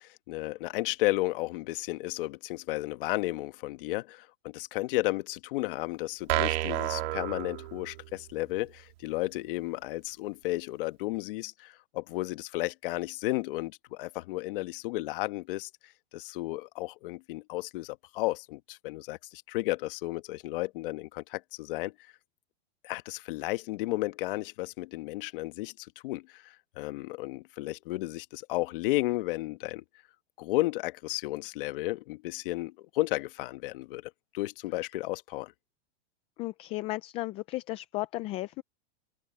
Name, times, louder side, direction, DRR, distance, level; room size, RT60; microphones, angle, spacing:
voice 1, 0.0-21.9 22.8-29.8 30.4-34.0 34.3-35.5, left 19 dB, 55° left, 1.4 m, -33 dB
sound 1, 6.3-8.2, right 16 dB, 65° right, 2.4 m, -30 dB
voice 2, 36.4-38.6, left 18 dB, 20° left, 0.3 m, -34 dB
supercardioid pair, 150°, 33 cm